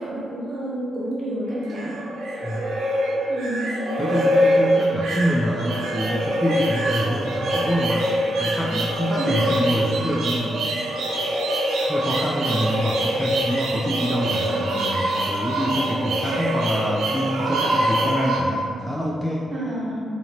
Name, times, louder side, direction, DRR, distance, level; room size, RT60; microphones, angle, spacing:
voice 1, 0.0-2.0 3.3-3.7 9.2-9.5 19.5-20.0, right 1 dB, 35° right, -7 dB, 1.1 m, -29 dB
sound 1, 1.5-18.4, right 1 dB, 75° right, 0.5 m, -24 dB
voice 2, 4.0-10.8 11.9-19.5, equal, 5° left, -4 dB, 0.3 m, -26 dB
2.8 x 2.7 x 4.3 m, 2.2 s
cardioid pair, 130°, 0 cm